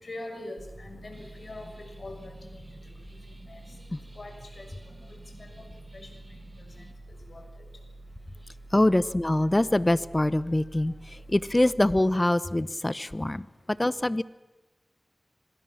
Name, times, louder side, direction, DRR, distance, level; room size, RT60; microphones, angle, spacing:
voice 1, 0.0-2.6 3.1-3.2 3.5-3.6 4.1-4.7 5.4-5.7 5.9-6.1 6.6-6.7 7.3-7.4, left 2 dB, 70° left, 4 dB, 6.7 m, -42 dB
sound 1, 0.6-12.0, right 2 dB, 65° right, 4.0 m, -48 dB
sound 2, 1.1-6.9, right 1 dB, 30° right, 3.6 m, -54 dB
voice 2, 8.7-14.2, left 1 dB, 30° left, 17 dB, 1.0 m, -24 dB
26.5 x 24.0 x 7.5 m, 1.1 s
cardioid pair, 45°, 0 cm